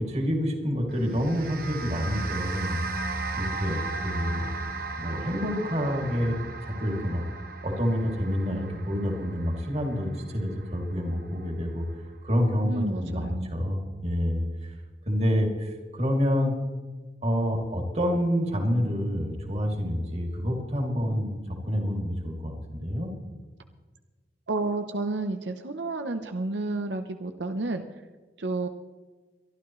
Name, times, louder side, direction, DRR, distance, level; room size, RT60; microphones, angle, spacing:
voice 1, 0.0-2.8 3.3-4.5 5.0-7.2 7.6-11.8 12.2-14.4 15.1-16.5 17.2-21.4 21.6-23.1, equal, 40° right, 2 dB, 2.7 m, -28 dB
sound 1, 0.9-11.4, right 3 dB, 55° right, 1.3 m, -36 dB
voice 2, 12.7-13.5 24.5-27.8 28.4-28.7, right 2 dB, 85° right, 7 dB, 0.8 m, -30 dB
23.5 x 12.0 x 3.2 m, 1.3 s
head